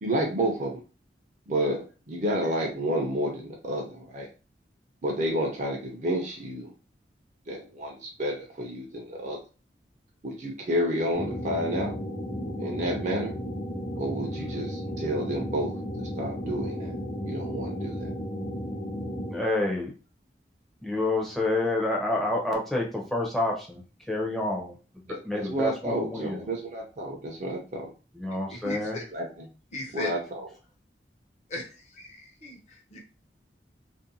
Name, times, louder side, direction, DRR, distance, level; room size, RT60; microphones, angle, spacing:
voice 1, 0.0-0.8 1.5-1.8 2.1-4.3 5.0-6.7 7.5-9.4 10.2-12.0 12.6-13.4 14.0-16.9 17.2-18.1 25.1-27.9 28.9-29.5 29.9-30.5, equal, 45° right, 0 dB, 0.5 m, -30 dB
sound 1, 11.1-19.3, equal, 85° left, 0.9 m, -34 dB
voice 2, 19.3-19.9 20.8-23.8 24.1-26.4 28.2-29.0, left 2 dB, ahead, -2 dB, 0.6 m, -28 dB
voice 3, 28.5-29.0 29.7-30.1 31.5-33.0, left 2 dB, 40° left, 0 dB, 0.7 m, -38 dB
2.5 x 2.2 x 2.6 m, 0.34 s
head